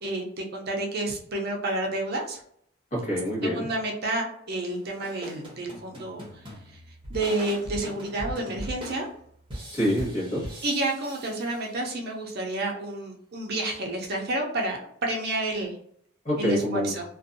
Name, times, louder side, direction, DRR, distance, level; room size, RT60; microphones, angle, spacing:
voice 1, 0.0-2.4 3.4-6.4 6.7-6.8 7.1-9.1 10.6-15.7 16.4-17.0, right 2 dB, 50° right, 0 dB, 0.5 m, -30 dB
voice 2, 2.9-3.7 9.7-10.4 16.2-16.9, equal, 35° left, -5 dB, 1.1 m, -26 dB
sound 1, 4.7-12.1, equal, 25° right, 0.8 m, -41 dB
2.6 x 2.2 x 2.5 m, 0.68 s
head